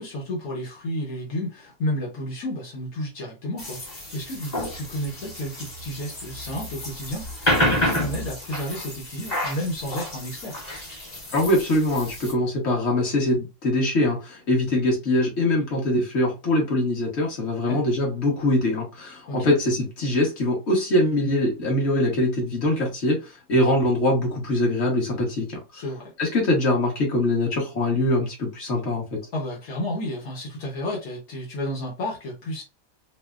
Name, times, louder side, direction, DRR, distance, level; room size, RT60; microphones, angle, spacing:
voice 1, 0.0-10.6 17.7-17.8 19.3-19.5 25.7-26.1 29.3-32.6, left 1 dB, 75° left, 1.4 m, -32 dB
sound 1, 3.6-12.3, left 1 dB, 30° left, 1.2 m, -29 dB
voice 2, 11.3-25.6 26.2-29.2, left 1 dB, 50° left, 1.5 m, -23 dB
4.8 x 2.1 x 2.3 m
omnidirectional pair, 1.6 m